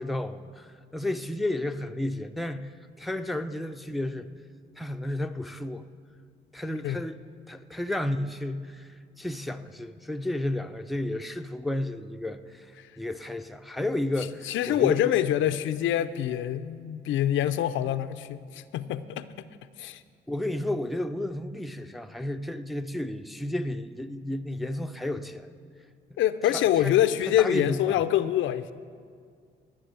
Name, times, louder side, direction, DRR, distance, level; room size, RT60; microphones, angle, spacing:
voice 1, 0.0-2.7 3.0-4.3 4.8-5.9 6.5-15.0 20.3-25.5 26.1-26.2 26.4-27.0 27.3-28.0, left 1 dB, ahead, 7 dB, 0.5 m, -32 dB
voice 2, 14.5-19.3 19.8-20.0 26.2-28.7, left 11 dB, 80° left, 12 dB, 0.5 m, -25 dB
12.5 x 6.2 x 8.9 m, 2.1 s
cardioid pair, 90°, 20 cm